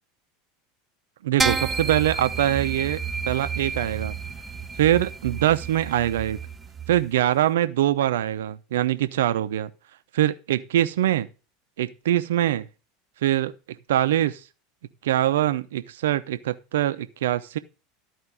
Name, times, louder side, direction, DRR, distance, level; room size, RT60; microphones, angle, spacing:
voice 1, 1.2-3.0 3.2-4.2 4.8-6.4 6.9-9.7 10.1-11.3 11.8-12.7 13.2-13.5 13.9-14.4 15.0-17.6, right 12 dB, 65° right, 0.7 m, -23 dB
sound 1, 1.4-7.0, right 5 dB, 15° right, 0.8 m, -30 dB
13.0 x 4.6 x 6.3 m
figure-of-eight pair, 80°, 0 cm